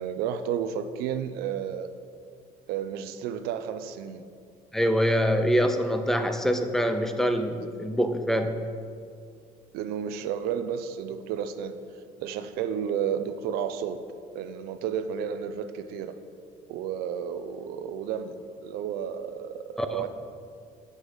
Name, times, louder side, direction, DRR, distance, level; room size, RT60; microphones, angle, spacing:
voice 1, 0.0-1.9 2.7-4.2 9.7-11.7 12.2-14.0 14.3-16.1 16.7-20.1, right 8 dB, 85° right, 10 dB, 0.6 m, -32 dB
voice 2, 4.7-8.6 19.8-19.9, equal, 5° left, 7 dB, 0.4 m, -24 dB
9.7 x 5.5 x 6.4 m, 2.2 s
cardioid pair, 180°, 16 cm